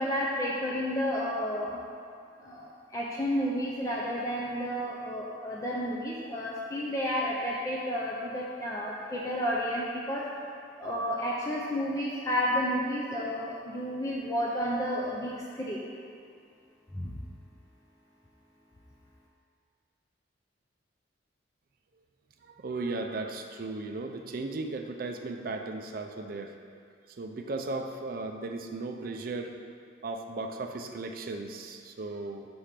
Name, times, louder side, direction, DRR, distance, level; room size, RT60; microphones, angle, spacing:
voice 1, 0.0-1.8 2.4-10.3 10.8-15.8 16.9-17.1, equal, 15° left, -5 dB, 0.5 m, -31 dB
voice 2, 22.4-26.6 27.1-29.6 30.0-32.5, right 3 dB, 50° right, 4 dB, 0.4 m, -36 dB
6.0 x 3.4 x 5.7 m, 2.2 s
head